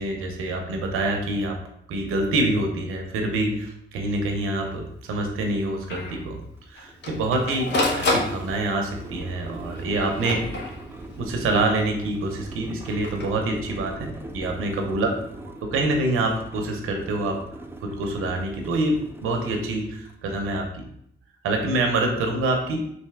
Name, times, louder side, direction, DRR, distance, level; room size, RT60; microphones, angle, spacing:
voice 1, 0.0-1.6 1.9-6.4 6.8-10.4 11.2-15.1 15.6-17.4 17.8-20.8 21.4-22.8, right 2 dB, 85° right, 3 dB, 0.6 m, -26 dB
Printer, 4.2-4.3 4.7-4.8 5.1-5.2 5.9-6.1 6.8-8.9 9.7-11.2 12.8-13.3, left 2 dB, 55° left, 0.9 m, -28 dB
sound 1, 5.1-5.2 5.5-20.2, right 2 dB, 10° right, 0.5 m, -41 dB
3.3 x 2.6 x 3.4 m, 0.73 s
supercardioid pair, 60°, 21 cm